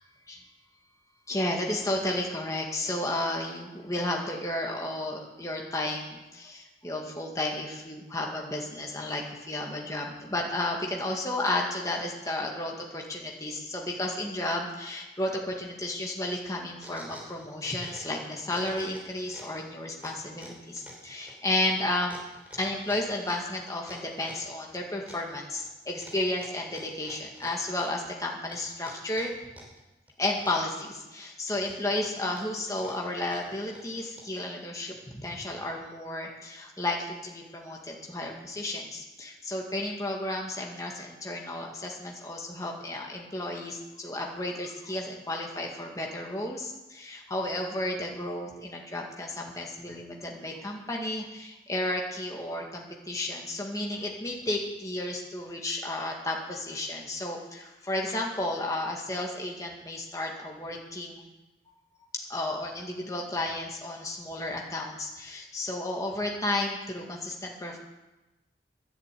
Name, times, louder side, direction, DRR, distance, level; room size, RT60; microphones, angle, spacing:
voice 1, 1.3-22.2 22.5-29.3 30.2-61.3 62.3-67.8, left 1 dB, 20° left, -1 dB, 2.1 m, -33 dB
sound 1, 16.5-18.2 18.4-19.6 20.0-24.6 25.1-25.7 26.0-28.1 28.5-29.8 30.1-31.1 31.5-34.4, equal, 10° right, 3.2 m, -49 dB
11.0 x 11.0 x 8.6 m, 1.0 s
head